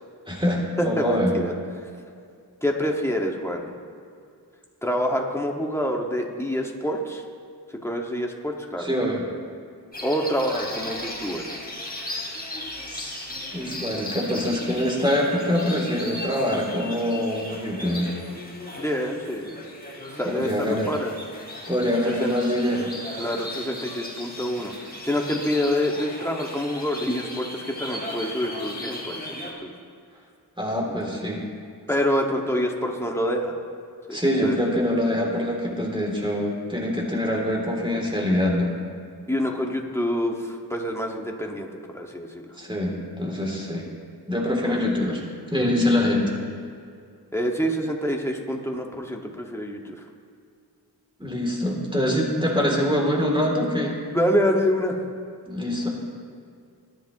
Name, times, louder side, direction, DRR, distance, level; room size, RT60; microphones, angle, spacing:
voice 1, 0.3-1.4 8.8-9.2 12.9-13.3 13.5-18.2 20.3-20.9 21.7-22.9 30.6-31.4 34.1-38.7 42.6-43.9 44.3-45.2 45.5-46.3 51.2-54.0 55.5-55.9, left 1 dB, 10° right, -2 dB, 3.1 m, -24 dB
voice 2, 0.8-1.5 2.6-3.7 4.8-7.2 7.8-8.9 10.0-11.4 18.8-19.6 20.1-21.1 22.1-22.3 23.2-24.7 25.0-29.7 30.8-31.2 31.9-33.6 34.1-34.6 39.3-41.7 41.9-42.3 44.6-44.9 47.3-50.0 54.1-55.0, equal, 5° left, 0 dB, 1.9 m, -26 dB
sound 1, 9.9-29.5, left 1 dB, 25° left, 2.9 m, -36 dB
22.5 x 10.5 x 3.1 m, 2.3 s
wide cardioid pair, 45°, 39 cm